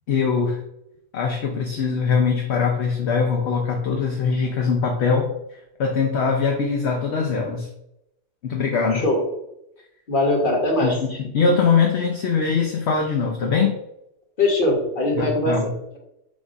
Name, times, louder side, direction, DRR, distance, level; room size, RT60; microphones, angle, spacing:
voice 1, 0.1-0.6 1.1-5.3 5.8-7.7 8.4-9.0 10.8-13.8 15.2-15.7, left 5 dB, 65° left, 1 dB, 1.0 m, -22 dB
voice 2, 10.1-10.9 14.4-16.0, left 1 dB, 45° left, 0 dB, 1.6 m, -21 dB
7.1 x 2.5 x 5.2 m, 0.83 s
omnidirectional pair, 1.3 m